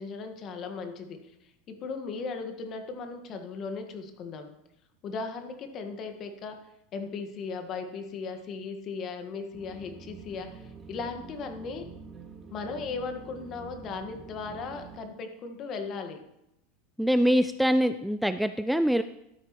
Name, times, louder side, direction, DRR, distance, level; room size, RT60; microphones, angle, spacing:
voice 1, 0.0-4.5 5.0-6.6 6.9-11.9 12.5-16.2, left 4 dB, 40° left, 6 dB, 1.6 m, -37 dB
sound 1, 9.5-15.0, right 5 dB, 20° right, 2.2 m, -46 dB
voice 2, 17.0-19.0, equal, ahead, 11 dB, 0.4 m, -24 dB
13.0 x 9.4 x 3.1 m, 0.84 s
hypercardioid pair, 90°, 0 cm